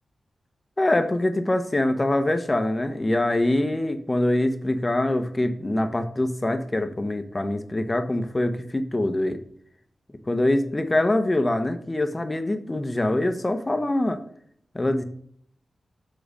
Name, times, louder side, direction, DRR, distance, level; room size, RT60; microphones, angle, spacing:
voice 1, 0.8-9.4 10.3-14.2 14.7-15.0, left 1 dB, 25° left, 9 dB, 0.9 m, -24 dB
7.2 x 3.9 x 4.9 m, 0.65 s
cardioid pair, 65°, 0 cm